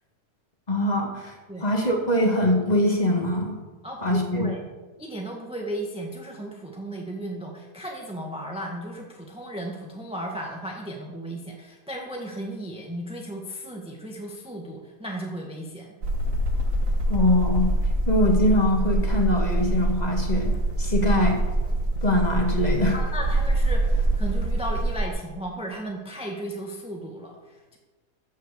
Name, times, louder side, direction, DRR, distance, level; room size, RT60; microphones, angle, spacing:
voice 1, 0.7-3.5 4.0-4.5 17.1-17.7 18.1-21.4 22.0-23.0, left 1 dB, 25° left, 2 dB, 2.1 m, -23 dB
voice 2, 3.8-4.6 5.0-15.9 22.9-27.8, right 1 dB, 5° right, 0 dB, 1.2 m, -35 dB
sound 1, 16.0-25.1, right 2 dB, 55° right, 1.7 m, -24 dB
14.5 x 6.4 x 6.9 m, 1.3 s
omnidirectional pair, 1.7 m